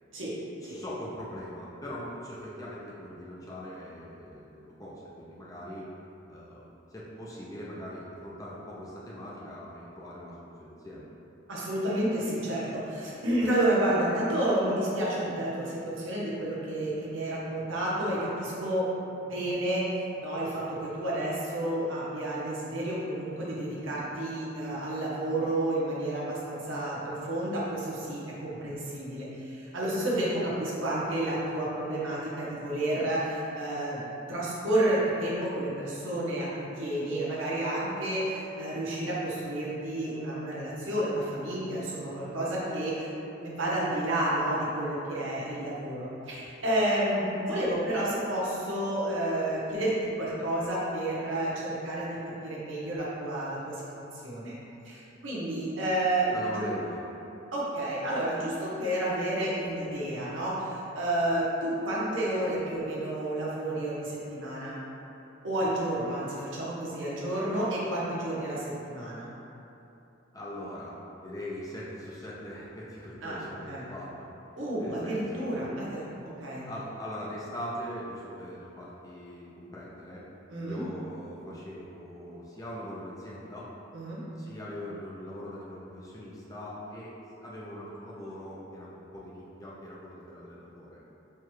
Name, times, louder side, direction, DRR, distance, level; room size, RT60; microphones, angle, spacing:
voice 1, 0.6-5.9 6.3-11.1 56.3-57.0 70.3-74.3 74.8-75.7 76.7-80.2 80.6-83.7 84.4-87.1 87.4-91.0, equal, 20° left, -6 dB, 0.4 m, -41 dB
voice 2, 11.5-18.9 19.2-34.0 34.3-43.1 43.4-53.7 54.1-54.6 54.9-56.7 57.5-64.8 65.4-69.3 73.2-73.4 73.7-73.9 74.6-76.1 76.4-76.7 80.5-80.8 83.9-84.2, right 1 dB, 80° right, -7 dB, 0.9 m, -30 dB
4.6 x 2.3 x 3.0 m, 2.9 s
head